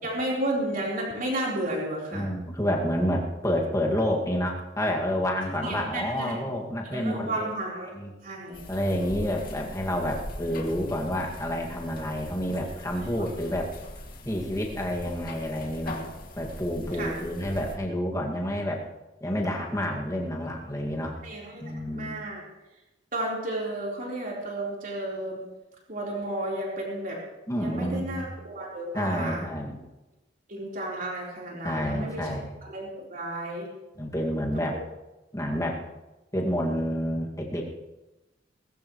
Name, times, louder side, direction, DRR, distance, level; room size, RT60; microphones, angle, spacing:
voice 1, 0.0-2.2 5.6-6.4 6.9-7.9 8.2-8.6 13.2-13.3 17.0-17.1 21.2-21.6 21.9-22.4 23.1-25.4 25.9-27.2 27.5-29.5 30.5-32.3 32.6-33.7 34.5-34.6, right 1 dB, 45° right, -3 dB, 4.1 m, -32 dB
voice 2, 2.1-7.5 7.9-8.1 8.7-13.7 14.2-16.0 16.4-18.9 19.2-21.2 21.6-22.2 27.5-28.2 28.9-29.8 31.6-32.5 34.0-34.8 35.3-35.8 36.3-37.6, equal, 15° left, -1 dB, 2.1 m, -29 dB
sound 1, 8.5-17.7, left 1 dB, 50° left, 2.3 m, -41 dB
19.5 x 15.0 x 3.2 m, 1.0 s
head